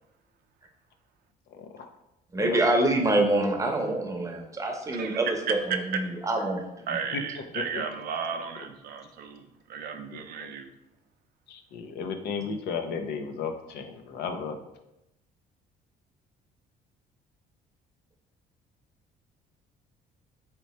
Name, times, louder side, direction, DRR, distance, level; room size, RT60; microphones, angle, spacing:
voice 1, 1.5-1.9 2.4-2.6 7.1-7.8 10.1-10.5 11.5-14.6, left 5 dB, 75° left, 6 dB, 0.5 m, -34 dB
voice 2, 2.3-6.9, right 2 dB, 20° right, 2 dB, 0.7 m, -26 dB
voice 3, 4.9-5.8 6.9-10.7, right 6 dB, 65° right, 6 dB, 0.5 m, -34 dB
3.2 x 3.0 x 4.2 m, 0.90 s
cardioid pair, 110°, 17 cm